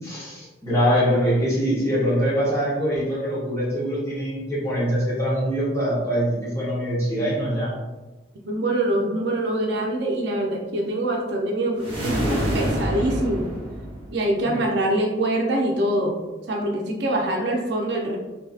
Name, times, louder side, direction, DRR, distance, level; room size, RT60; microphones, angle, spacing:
voice 1, 0.0-7.8 14.4-14.6, equal, 15° left, -7 dB, 0.9 m, -23 dB
voice 2, 8.4-13.5 14.1-16.2 16.5-18.2, right 1 dB, 65° right, 0 dB, 0.5 m, -24 dB
sound 1, 11.8-14.4, equal, 30° right, 0.7 m, -26 dB
3.1 x 2.6 x 2.4 m, 1.1 s
head